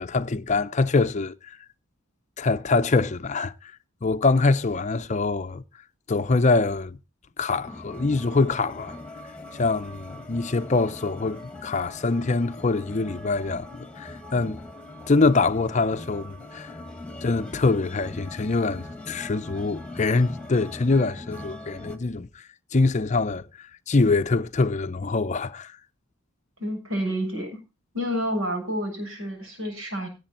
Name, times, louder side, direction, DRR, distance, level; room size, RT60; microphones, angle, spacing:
voice 1, 0.0-1.6 2.4-3.5 4.0-5.6 6.1-7.0 7.4-9.0 9.5-14.6 15.1-16.7 17.2-22.3 22.7-23.4 23.9-25.7, left 3 dB, 35° left, 0.5 m, -24 dB
sound 1, 7.6-22.0, left 2 dB, 5° left, 1.5 m, -41 dB
voice 2, 26.6-27.5 27.9-30.1, equal, 75° right, 7.1 m, -29 dB
18.0 x 8.3 x 4.2 m
head